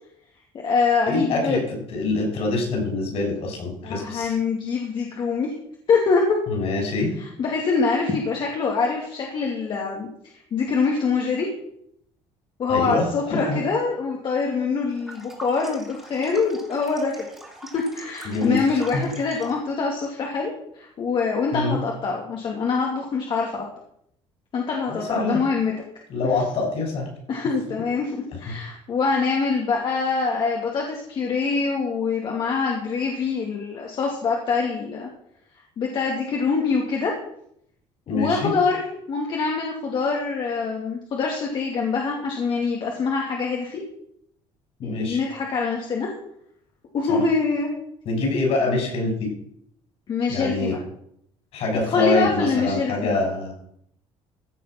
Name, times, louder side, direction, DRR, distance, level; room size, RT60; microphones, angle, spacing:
voice 1, 0.5-1.6 3.8-5.5 5.9-6.4 7.2-11.5 12.6-17.3 17.7-23.6 24.5-25.7 27.3-35.1 35.8-37.1 38.1-38.8 39.1-43.8 44.8-46.1 46.9-47.7 50.1-50.8 51.9-53.2, left 4 dB, 45° left, -1 dB, 2.6 m, -24 dB
voice 2, 1.1-1.6 1.9-4.4 6.5-7.1 12.7-13.6 18.2-19.0 21.5-21.8 24.9-25.4 26.1-27.1 28.5-28.6 38.1-38.5 44.8-45.2 47.1-47.2 48.0-49.3 50.3-50.7 51.5-53.5, left 3 dB, 60° left, 1 dB, 6.6 m, -25 dB
sound 1, 14.9-19.7, right 1 dB, 5° right, 3.0 m, -43 dB
15.5 x 6.8 x 6.0 m, 0.71 s
cardioid pair, 130°, 11 cm